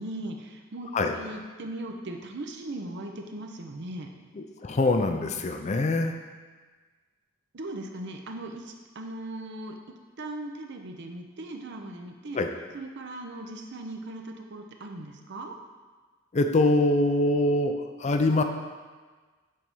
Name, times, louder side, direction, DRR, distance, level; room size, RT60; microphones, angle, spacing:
voice 1, 0.0-4.1 7.5-12.4 12.7-15.6, right 1 dB, 55° right, 3 dB, 0.7 m, -38 dB
voice 2, 4.4-6.1 12.3-12.5 16.3-17.7 18.0-18.4, left 2 dB, 35° left, 6 dB, 0.4 m, -24 dB
7.6 x 3.4 x 5.5 m, 1.4 s
head